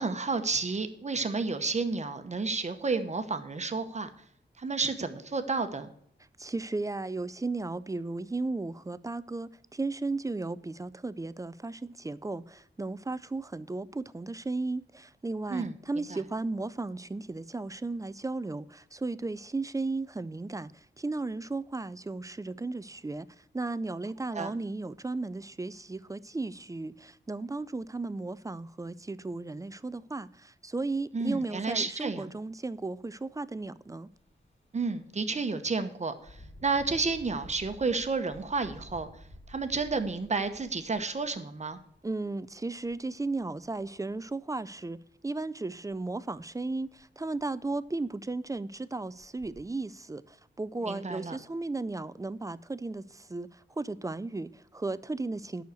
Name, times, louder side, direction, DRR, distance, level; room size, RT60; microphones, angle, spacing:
voice 1, 0.0-4.1 4.6-5.9 15.5-16.2 24.3-24.5 31.1-32.3 34.7-39.1 39.5-41.8 50.8-51.4, right 4 dB, 35° right, 1.0 m, -31 dB
voice 2, 6.4-34.1 42.0-55.6, right 3 dB, 15° right, 0.4 m, -35 dB
Engine, 34.1-34.3 34.8-35.0 36.2-42.0 42.8-43.0 43.4-44.1 45.9-46.0 46.4-46.5 47.0-47.1 47.4-47.9 48.5-48.6 49.2-49.6, left 1 dB, 35° left, 2.5 m, -51 dB
9.5 x 6.4 x 8.0 m
wide cardioid pair, 145°, 19 cm